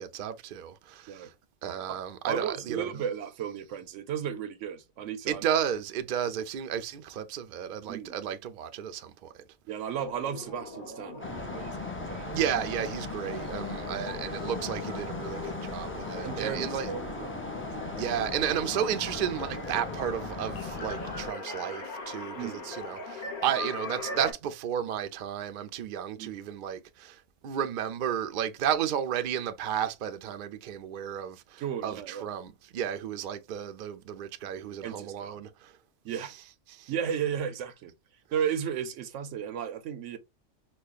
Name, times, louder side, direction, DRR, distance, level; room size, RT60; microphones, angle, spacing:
voice 1, 0.0-1.3 1.6-2.9 5.3-9.3 12.3-16.9 18.0-35.8 36.7-36.9, right 9 dB, 60° right, 0.5 m, -33 dB
voice 2, 2.3-5.4 7.9-8.1 9.7-12.4 16.2-18.0 22.4-22.7 26.2-26.3 31.6-32.3 34.8-35.4 36.0-36.3 36.9-37.9 38.3-40.2, right 8 dB, 80° right, 0.9 m, -34 dB
sound 1, 10.0-24.3, left 3 dB, 45° left, 0.9 m, -41 dB
sound 2, 11.2-21.3, left 3 dB, 20° left, 0.4 m, -38 dB
5.1 x 2.2 x 2.3 m
omnidirectional pair, 1.3 m